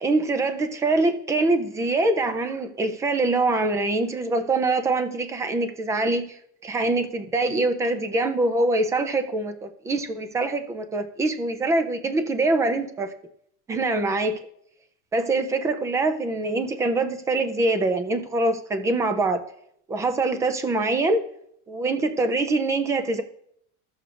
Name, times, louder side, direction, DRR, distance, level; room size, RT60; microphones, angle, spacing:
voice 1, 0.0-6.4 6.6-13.1 13.7-14.4 15.1-19.4 19.9-21.2 21.7-23.2, right 2 dB, 10° right, 9 dB, 0.3 m, -24 dB
15.0 x 6.7 x 2.5 m, 0.70 s
cardioid pair, 160°, 35 cm